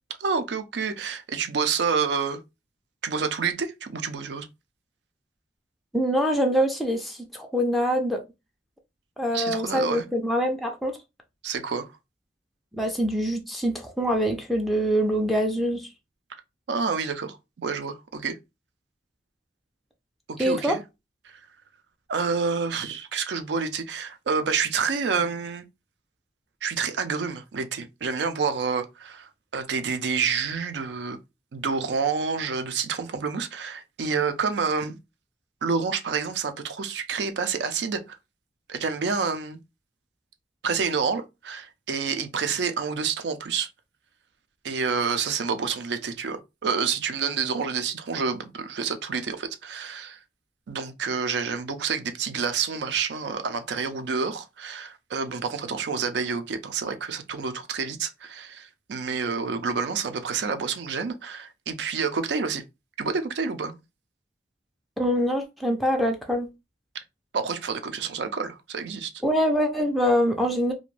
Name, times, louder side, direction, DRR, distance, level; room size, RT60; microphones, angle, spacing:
voice 1, 0.2-2.4 3.0-4.5 9.3-10.0 11.4-11.9 16.7-18.4 20.3-20.8 21.2-21.4 22.1-25.6 26.6-31.2 31.5-35.0 35.6-38.2 38.7-39.6 40.6-43.7 44.6-50.2 50.7-62.6 63.0-63.8 67.3-69.1, right 5 dB, 75° right, 0.4 m, -28 dB
voice 2, 5.9-8.2 9.2-11.0 12.7-15.9 20.4-20.8 65.0-66.5 69.2-70.7, equal, ahead, 0.3 m, -24 dB
2.4 x 2.2 x 3.1 m
head